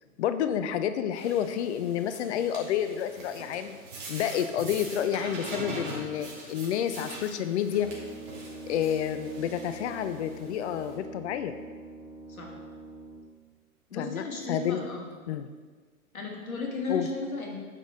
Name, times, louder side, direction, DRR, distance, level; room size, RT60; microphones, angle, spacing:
voice 1, 0.2-3.8 4.1-7.9 8.7-11.5 13.9-14.9 15.3-15.5 16.9-17.1, left 9 dB, 55° left, 10 dB, 0.6 m, -29 dB
sound 1, 1.1-11.0, right 2 dB, 40° right, 2.5 m, -43 dB
Brass instrument, 7.7-13.4, right 2 dB, 5° right, 2.1 m, -44 dB
voice 2, 13.9-15.1 16.1-17.6, left 3 dB, 80° left, 0 dB, 1.8 m, -35 dB
9.1 x 6.1 x 3.7 m, 1.5 s
figure-of-eight pair, 105°, 42 cm